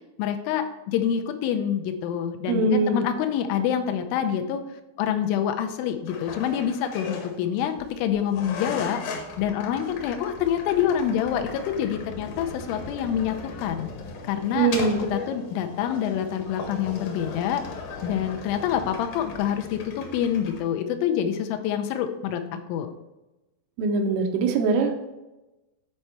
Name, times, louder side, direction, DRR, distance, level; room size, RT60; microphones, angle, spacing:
voice 1, 0.2-4.6 5.0-9.0 9.4-13.9 14.3-14.7 15.1-17.6 18.0-22.9, left 9 dB, 90° left, 6 dB, 3.0 m, -26 dB
voice 2, 2.5-3.1 14.6-15.1 23.8-25.0, right 3 dB, 90° right, 3 dB, 3.4 m, -22 dB
sound 1, 6.1-20.6, left 4 dB, 70° left, 2.2 m, -38 dB
9.6 x 4.4 x 4.5 m, 1.0 s
omnidirectional pair, 5.5 m